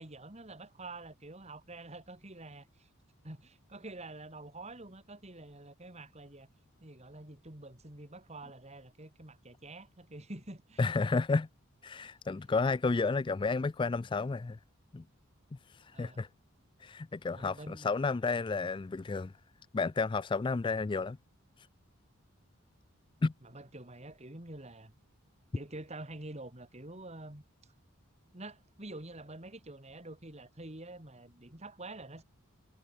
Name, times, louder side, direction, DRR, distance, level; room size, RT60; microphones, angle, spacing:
voice 1, 0.0-2.9 3.2-6.5 6.8-10.9 15.9-16.2 17.3-17.9 23.4-24.9 25.5-27.4 28.3-32.2, right 2 dB, 30° right, 3.0 m, -47 dB
voice 2, 10.8-11.5 11.8-14.6 14.9-15.0 15.8-16.3 16.8-19.3 19.7-21.2 23.2-23.3, left 4 dB, 25° left, 0.3 m, -31 dB
head